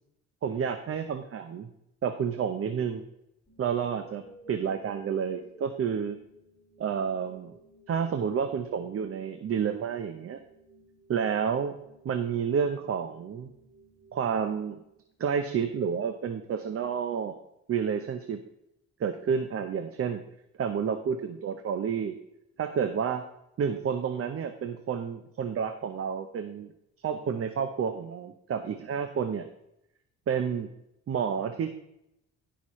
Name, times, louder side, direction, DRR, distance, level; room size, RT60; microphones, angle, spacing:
voice 1, 0.4-1.7 2.0-3.0 3.6-6.2 6.8-7.5 7.9-10.4 11.1-11.8 12.0-13.5 14.1-14.8 15.2-17.4 17.7-18.4 19.0-20.2 20.6-22.2 22.6-23.2 23.6-26.7 27.0-29.5 30.3-30.7 31.1-31.7, right 7 dB, 50° right, 8 dB, 0.8 m, -30 dB
sound 1, 3.5-15.5, right 2 dB, 10° left, 3.0 m, -56 dB
16.0 x 6.0 x 3.1 m, 0.82 s
cardioid pair, 90°, 30 cm